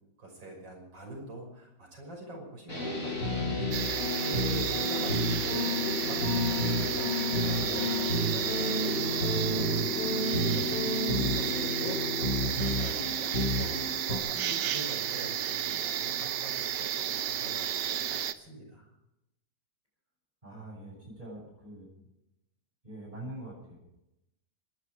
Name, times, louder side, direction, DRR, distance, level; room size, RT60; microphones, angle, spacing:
voice 1, 0.2-18.9, right 2 dB, 90° right, 0 dB, 6.4 m, -44 dB
sound 1, 2.7-12.5, left 3 dB, 45° left, 7.0 m, -35 dB
sound 2, 2.8-14.2, left 1 dB, 65° left, 2.5 m, -32 dB
sound 3, 3.7-18.3, right 10 dB, 70° right, 1.4 m, -32 dB
voice 2, 20.4-21.9 22.8-23.8, right 1 dB, 20° right, -9 dB, 7.7 m, -44 dB
26.5 x 11.0 x 5.0 m, 0.87 s
omnidirectional pair, 2.0 m